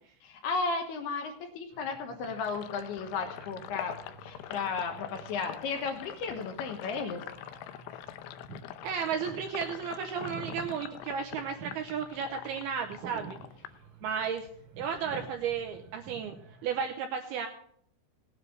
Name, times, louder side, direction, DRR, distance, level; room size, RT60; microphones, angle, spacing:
voice 1, 0.2-7.2, left 4 dB, 70° left, 4 dB, 2.9 m, -34 dB
sound 1, 1.7-16.9, right 3 dB, 55° right, 2.2 m, -50 dB
Sink (filling or washing), 2.2-14.5 14.9-16.3, left 12 dB, 85° left, 3.1 m, -45 dB
voice 2, 8.8-13.4 14.0-14.5 14.8-16.4 16.6-17.5, right 7 dB, 80° right, 4 dB, 2.3 m, -33 dB
18.0 x 9.6 x 3.9 m, 0.64 s
omnidirectional pair, 5.3 m